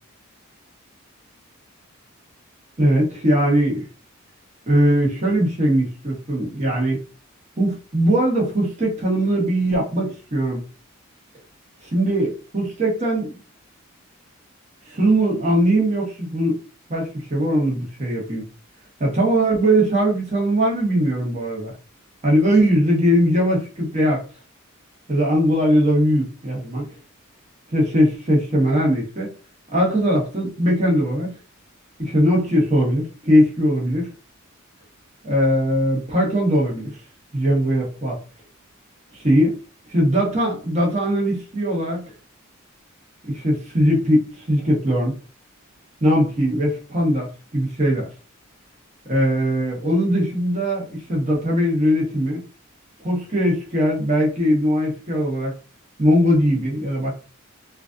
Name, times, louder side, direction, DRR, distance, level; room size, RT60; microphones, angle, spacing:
voice 1, 2.8-3.8 4.7-7.0 7.6-10.6 11.9-13.4 14.9-16.6 16.9-18.5 19.0-21.7 22.2-24.3 25.1-26.8 27.7-29.3 29.7-31.3 32.0-34.1 35.2-36.9 37.3-38.2 39.2-39.5 39.9-42.1 43.2-45.1 46.0-48.1 49.1-52.4 53.0-55.5 56.0-57.1, equal, 30° right, 1.2 m, -20 dB
3.2 x 2.4 x 2.5 m
head